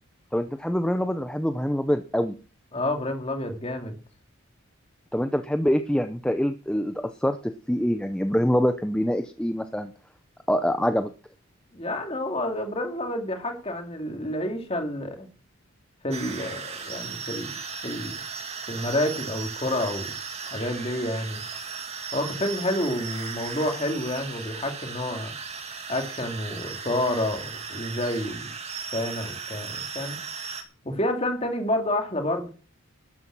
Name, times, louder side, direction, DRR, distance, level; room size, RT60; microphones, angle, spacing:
voice 1, 0.3-2.3 5.1-9.9 10.5-11.1, equal, 5° left, 8 dB, 0.6 m, -25 dB
voice 2, 2.7-4.0 11.7-15.3 16.0-17.6 17.8-18.2 18.7-20.2 20.5-21.4 22.1-25.3 25.9-28.5 28.9-30.2 30.8-32.5, left 1 dB, 25° left, 4 dB, 2.7 m, -29 dB
sound 1, 16.1-30.6, right 5 dB, 30° right, 2.2 m, -36 dB
12.5 x 9.4 x 6.2 m, 0.36 s
head